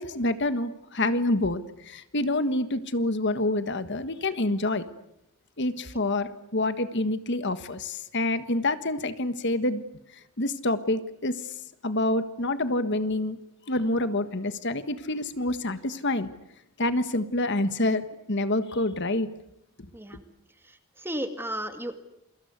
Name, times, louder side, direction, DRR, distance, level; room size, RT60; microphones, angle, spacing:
voice 1, 0.0-4.8 5.6-9.8 10.4-11.5 11.8-13.4 13.7-16.3 16.8-19.3, left 2 dB, 55° left, 11 dB, 1.5 m, -27 dB
voice 2, 20.6-21.9, equal, 10° right, 8 dB, 2.1 m, -34 dB
28.5 x 24.0 x 8.3 m, 0.82 s
head